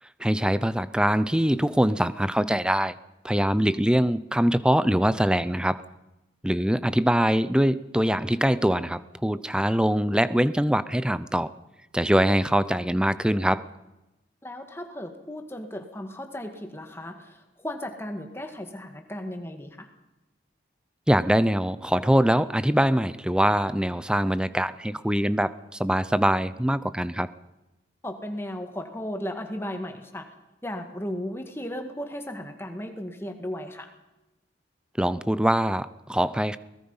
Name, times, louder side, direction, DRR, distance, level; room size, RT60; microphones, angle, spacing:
voice 1, 0.2-3.0 3.2-5.8 6.4-11.5 11.9-13.6 21.1-27.3 35.0-36.6, equal, 5° right, 15 dB, 0.6 m, -23 dB
voice 2, 14.4-19.9 28.0-30.3 30.6-33.9, left 1 dB, 15° left, 5 dB, 1.9 m, -35 dB
23.0 x 20.0 x 5.6 m, 0.98 s
head